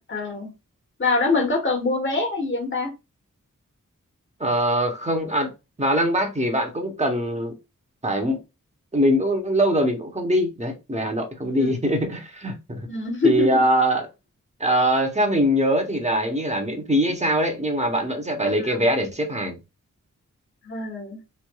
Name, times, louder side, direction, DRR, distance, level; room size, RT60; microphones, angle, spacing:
voice 1, 0.1-0.5 1.0-2.9 11.6-12.0 12.9-13.5 18.6-18.8 20.6-21.2, left 3 dB, 35° left, 1.2 m, -24 dB
voice 2, 4.4-5.5 5.8-7.5 8.0-8.4 8.9-12.9 13.2-14.1 14.6-19.6, equal, 20° right, 0.9 m, -22 dB
3.2 x 2.5 x 2.3 m
cardioid pair, 45°, 33 cm